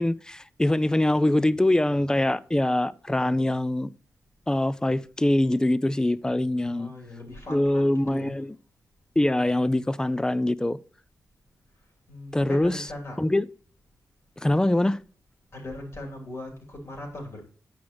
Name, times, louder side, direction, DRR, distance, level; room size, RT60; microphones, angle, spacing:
voice 1, 0.0-3.9 4.5-6.9 7.5-8.5 9.2-10.8 12.3-12.8 13.2-13.5 14.4-15.0, left 1 dB, 10° left, 0.3 m, -23 dB
voice 2, 6.6-8.4 12.1-13.2 15.5-17.4, left 1 dB, 50° left, 2.9 m, -39 dB
8.5 x 6.1 x 3.1 m
cardioid pair, 65°, 6 cm